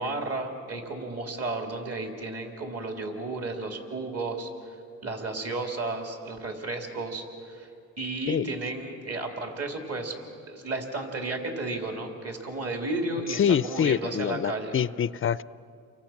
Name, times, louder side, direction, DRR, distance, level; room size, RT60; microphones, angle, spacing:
voice 1, 0.0-4.5 5.0-7.7 8.0-10.2 10.5-14.7, right 2 dB, 45° right, 3 dB, 3.3 m, -33 dB
voice 2, 13.3-15.4, left 8 dB, 40° left, 18 dB, 0.5 m, -26 dB
30.0 x 24.0 x 5.9 m, 2.5 s
cardioid pair, 100°, 33 cm